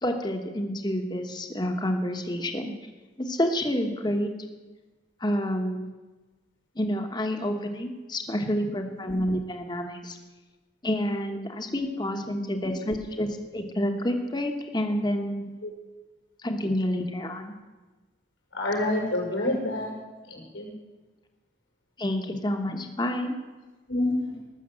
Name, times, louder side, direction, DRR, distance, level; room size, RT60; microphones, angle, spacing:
voice 1, 0.0-2.7 3.2-4.3 5.2-5.9 6.7-10.2 10.8-15.5 16.4-17.5 22.0-23.4, equal, 20° left, 5 dB, 1.2 m, -28 dB
voice 2, 18.5-19.9 20.3-20.7 23.9-24.4, left 1 dB, 90° left, -1 dB, 5.9 m, -27 dB
18.5 x 6.8 x 7.6 m, 1.2 s
head